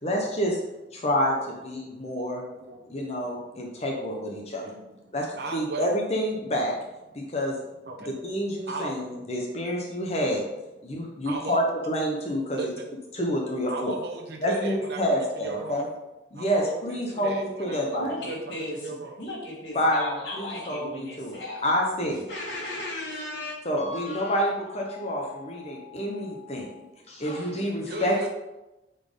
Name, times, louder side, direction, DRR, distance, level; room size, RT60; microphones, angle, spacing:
voice 1, 0.0-0.6 0.9-2.4 2.9-4.6 5.1-6.7 7.1-7.5 8.0-10.4 10.8-12.6 13.1-13.9 14.4-15.9 16.3-18.1 19.7-22.3 23.6-28.3, equal, 35° left, 0 dB, 1.0 m, -28 dB
voice 2, 4.6-5.0 5.3-5.9 7.9-8.2 8.6-8.9 10.0-10.1 11.2-11.6 12.5-12.9 13.7-15.9 16.4-19.3 27.9-28.3, right 2 dB, 60° right, 0 dB, 0.9 m, -36 dB
voice 3, 18.0-21.6 22.3-23.6, left 1 dB, 60° left, -8 dB, 1.9 m, -35 dB
8.6 x 4.2 x 3.8 m, 0.98 s
head